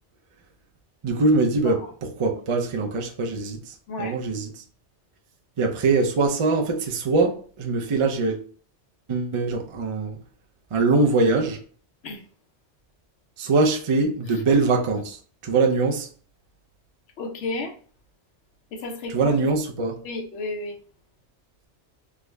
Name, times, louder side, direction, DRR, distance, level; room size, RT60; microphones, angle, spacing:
voice 1, 1.0-4.6 5.6-8.4 9.1-10.2 10.7-11.6 13.4-16.1 19.1-20.0, right 3 dB, 45° right, 0.4 m, -23 dB
voice 2, 17.2-17.8 18.7-19.3 20.0-20.8, left 3 dB, 80° left, 1.0 m, -32 dB
3.6 x 2.0 x 3.3 m
omnidirectional pair, 1.2 m